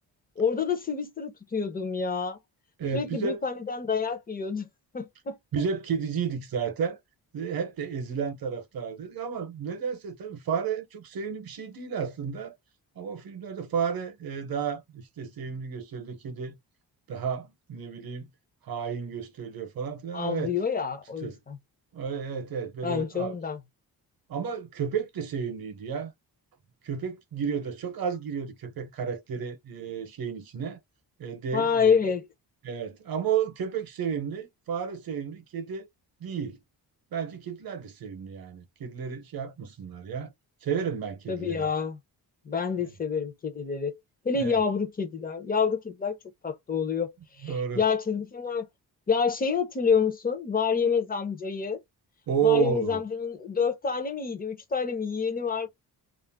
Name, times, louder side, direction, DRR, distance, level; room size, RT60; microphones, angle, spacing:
voice 1, 0.4-2.4 2.9-4.7 4.9-5.4 20.1-21.6 22.8-23.6 31.5-32.2 41.3-42.0 42.5-43.9 44.2-46.2 46.4-48.7 49.1-51.8 52.4-55.7, left 6 dB, 20° left, 0.6 m, -28 dB
voice 2, 2.8-3.4 5.5-7.0 7.3-12.5 13.0-16.6 17.1-18.3 18.6-20.5 21.2-21.4 21.9-23.3 24.3-26.1 26.8-30.8 31.2-31.9 32.6-35.9 36.2-36.6 37.1-40.3 40.6-41.7 42.8-42.9 44.4-44.6 47.4-47.8 52.3-53.0, right 7 dB, 60° right, 0.7 m, -32 dB
2.4 x 2.0 x 3.3 m
wide cardioid pair, 145°, 40 cm